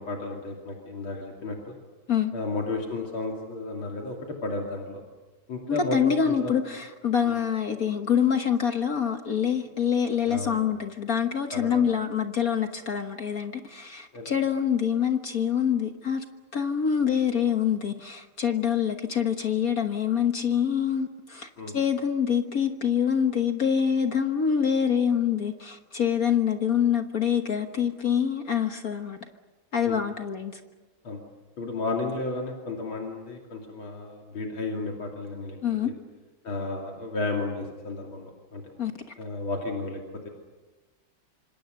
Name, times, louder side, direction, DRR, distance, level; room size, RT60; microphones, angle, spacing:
voice 1, 0.0-1.8 2.3-5.0 5.5-6.5 7.3-7.4 10.3-10.6 11.5-11.9 14.1-14.3 21.6-21.8 29.9-30.0 31.0-31.2 31.6-35.6 35.8-35.9 36.4-38.6 39.2-40.3, left 3 dB, 80° left, 3.6 m, -33 dB
voice 2, 5.7-16.2 16.5-29.2 29.7-30.6 35.6-35.9 38.8-38.9, left 8 dB, 50° left, 1.6 m, -25 dB
27.0 x 26.0 x 6.6 m
omnidirectional pair, 2.2 m